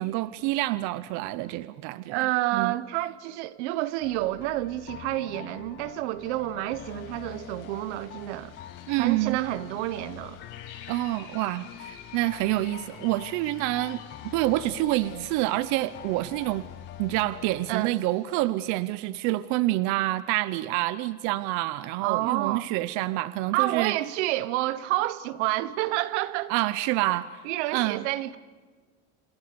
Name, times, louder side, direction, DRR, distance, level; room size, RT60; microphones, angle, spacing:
voice 1, 0.0-2.8 8.9-9.4 10.9-16.6 17.0-24.0 26.5-27.4 27.7-28.1, right 17 dB, 60° right, 0.7 m, -27 dB
voice 2, 2.1-8.5 9.0-10.4 17.7-17.9 22.0-22.7 23.5-26.5 27.4-28.4, right 16 dB, 85° right, 1.2 m, -29 dB
sound 1, 4.0-17.8, left 12 dB, 35° left, 0.8 m, -45 dB
sound 2, 6.8-19.3, left 7 dB, 65° left, 7.6 m, -51 dB
27.5 x 20.5 x 6.9 m
cardioid pair, 150°, 34 cm